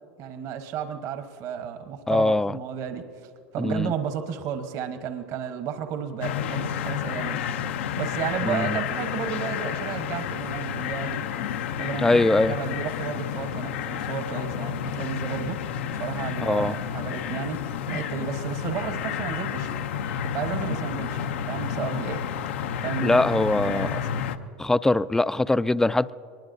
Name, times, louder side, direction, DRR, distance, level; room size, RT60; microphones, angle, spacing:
voice 1, 0.2-7.4 8.0-11.3 11.8-15.6 15.9-19.7 20.2-22.2 22.8-24.1, right 8 dB, 55° right, 1.1 m, -33 dB
voice 2, 2.1-2.6 3.6-3.9 8.5-8.8 12.0-12.5 16.4-16.8 23.0-23.9 24.6-26.1, left 2 dB, 5° left, 0.3 m, -22 dB
sound 1, 6.2-24.4, left 8 dB, 80° left, 0.6 m, -30 dB
23.5 x 21.0 x 2.7 m
hypercardioid pair, 95°, 7 cm